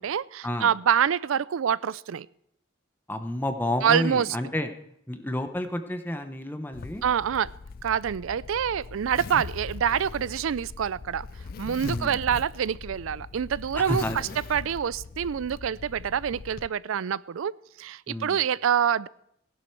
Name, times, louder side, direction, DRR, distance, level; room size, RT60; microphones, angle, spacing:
voice 1, 0.0-2.3 3.8-4.3 7.0-7.5 7.8-11.3 11.6-17.5 17.8-19.1, right 8 dB, 80° right, 0.4 m, -26 dB
voice 2, 3.1-4.7 5.1-7.0 11.8-12.2 13.7-14.2 18.1-18.4, left 1 dB, 10° left, 0.7 m, -30 dB
Zipper (clothing), 6.7-16.7, left 4 dB, 45° left, 0.4 m, -40 dB
16.0 x 11.0 x 4.6 m
head